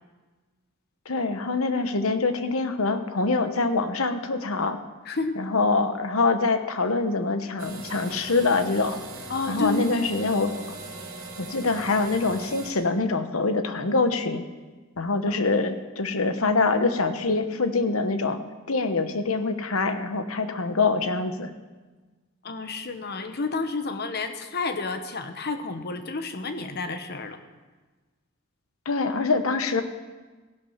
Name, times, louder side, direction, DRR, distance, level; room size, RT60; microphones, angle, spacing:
voice 1, 1.1-4.8 5.4-9.0 9.5-10.6 11.4-14.4 15.0-18.4 18.7-21.5 28.8-29.8, left 3 dB, 85° left, 9 dB, 1.1 m, -24 dB
voice 2, 5.0-5.4 9.3-10.1 15.2-15.4 22.4-27.4, left 3 dB, 50° left, 8 dB, 1.1 m, -30 dB
sound 1, 7.6-12.7, right 2 dB, 75° right, 3.1 m, -40 dB
15.5 x 11.0 x 5.8 m, 1.3 s
head